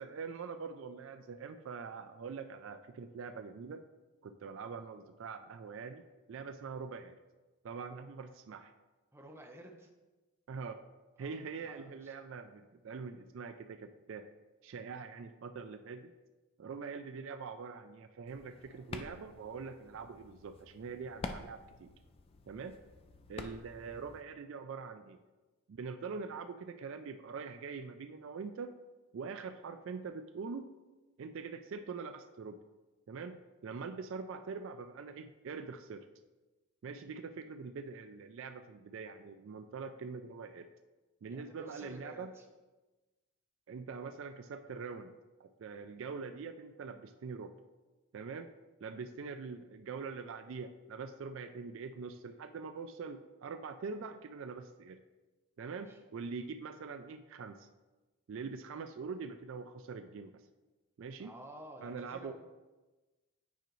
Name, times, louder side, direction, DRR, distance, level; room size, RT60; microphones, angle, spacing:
voice 1, 0.0-3.8 4.2-7.2 7.6-8.7 10.5-10.8 11.2-14.3 14.6-16.1 16.6-21.9 22.5-22.8 23.3-25.2 25.7-28.7 29.1-30.7 31.2-32.6 33.1-36.1 36.8-40.7 41.2-42.3 43.7-47.5 48.1-48.5 48.8-55.0 55.6-57.7 58.3-60.3 61.0-61.3 61.8-62.3, right 5 dB, 60° right, 9 dB, 0.3 m, -44 dB
voice 2, 9.1-9.9 11.2-12.1 41.3-42.5 55.9-56.0 61.2-62.3, right 1 dB, 10° right, 1 dB, 0.6 m, -52 dB
sound 1, 18.3-24.2, left 3 dB, 25° left, 0.3 m, -48 dB
9.2 x 5.0 x 3.1 m, 1.2 s
head